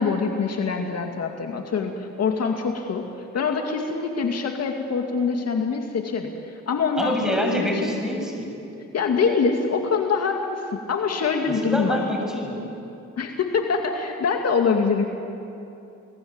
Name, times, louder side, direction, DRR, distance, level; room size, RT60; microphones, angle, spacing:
voice 1, 0.0-3.1 3.3-7.9 8.9-12.0 13.2-15.0, left 5 dB, 55° left, 3 dB, 2.3 m, -24 dB
voice 2, 7.0-8.6 11.4-12.6, left 1 dB, ahead, 1 dB, 6.9 m, -26 dB
28.0 x 19.5 x 8.9 m, 2.8 s
cardioid pair, 90°, 30 cm